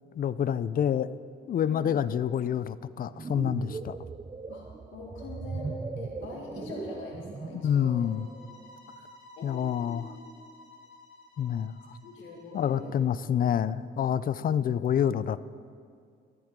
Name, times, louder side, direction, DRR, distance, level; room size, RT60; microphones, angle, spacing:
voice 1, 0.1-1.1 1.5-4.0 7.5-8.2 9.4-10.1 11.4-11.7 12.5-15.4, left 9 dB, 45° left, 16 dB, 0.4 m, -27 dB
voice 2, 1.6-2.1 4.5-8.1 9.4-10.1 12.0-13.0 13.2-13.4, left 3 dB, 85° left, -1 dB, 2.1 m, -43 dB
sound 1, 2.9-7.7, right 4 dB, 20° right, 0.5 m, -38 dB
sound 2, 8.0-12.9, left 1 dB, 70° left, 3.9 m, -53 dB
23.5 x 7.9 x 3.7 m, 2.2 s
cardioid pair, 90°, 20 cm